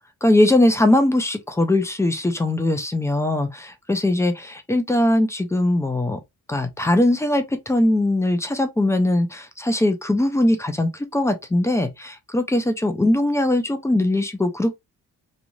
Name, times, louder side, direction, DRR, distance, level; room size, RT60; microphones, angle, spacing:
voice 1, 0.2-6.2 6.5-14.7, left 1 dB, 10° left, 0.4 m, -20 dB
3.1 x 2.4 x 2.5 m
wide cardioid pair, 160°, 34 cm